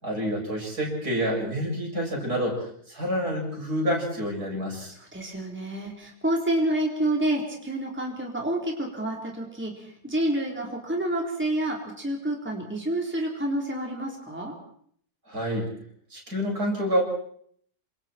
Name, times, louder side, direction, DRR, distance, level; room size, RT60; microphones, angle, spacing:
voice 1, 0.0-4.9 15.3-15.7 16.1-17.0, equal, 60° right, -1 dB, 8.3 m, -28 dB
voice 2, 4.9-14.5, right 1 dB, 5° right, -1 dB, 4.1 m, -28 dB
28.5 x 27.0 x 4.5 m, 0.62 s
omnidirectional pair, 1.8 m